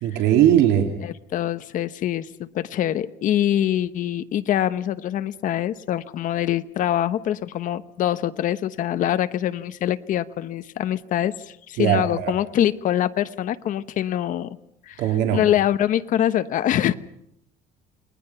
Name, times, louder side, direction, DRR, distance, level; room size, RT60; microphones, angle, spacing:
voice 1, 0.0-1.0 11.8-12.3 15.0-15.4, right 10 dB, 85° right, 3 dB, 2.9 m, -19 dB
voice 2, 1.0-14.5 14.9-15.0 15.3-16.9, left 11 dB, 50° left, 12 dB, 1.0 m, -24 dB
29.5 x 20.0 x 5.7 m, 0.79 s
cardioid pair, 160°, 18 cm